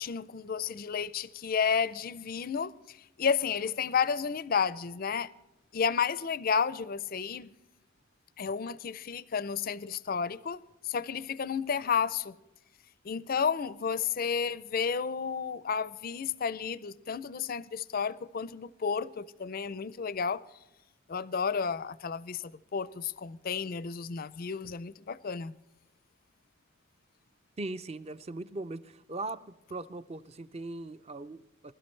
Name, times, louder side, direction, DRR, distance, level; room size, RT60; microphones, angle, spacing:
voice 1, 0.0-5.3 5.7-7.5 8.4-10.6 10.8-12.3 13.0-20.4 21.1-25.5, left 6 dB, 40° left, 0.4 m, -32 dB
voice 2, 27.6-29.4 29.7-31.7, right 2 dB, 30° right, 0.5 m, -39 dB
21.0 x 12.5 x 3.2 m
head